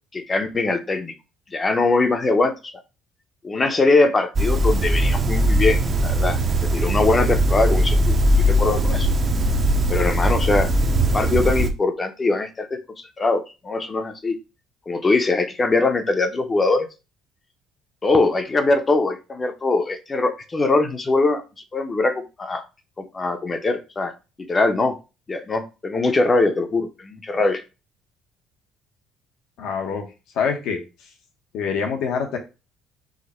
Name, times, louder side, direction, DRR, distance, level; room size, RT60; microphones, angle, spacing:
voice 1, 0.1-1.1 1.5-2.5 3.4-9.1 9.9-10.7 11.1-12.7 13.2-14.4 14.9-16.9 18.0-21.4 21.7-22.6 23.1-24.1 24.5-24.9 25.3-27.6, left 3 dB, 20° left, 8 dB, 0.6 m, -21 dB
sound 1, 4.4-11.7, right 1 dB, 35° right, 0.6 m, -20 dB
voice 2, 29.6-30.1 30.3-30.8 31.5-32.4, left 6 dB, 70° left, 3 dB, 0.9 m, -25 dB
4.8 x 2.1 x 4.2 m, 0.29 s
cardioid pair, 130°, 0 cm